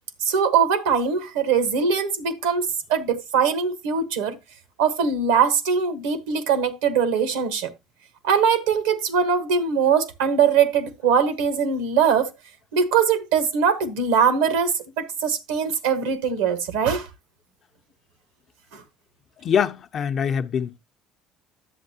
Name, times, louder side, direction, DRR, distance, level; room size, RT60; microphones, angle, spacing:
voice 1, 0.2-4.4 4.8-7.7 8.2-12.3 12.7-17.1 18.7-18.8, right 6 dB, 80° right, 1.1 m, -21 dB
voice 2, 19.4-20.8, left 7 dB, 50° left, 0.7 m, -24 dB
10.0 x 7.8 x 2.8 m
hypercardioid pair, 60°, 0 cm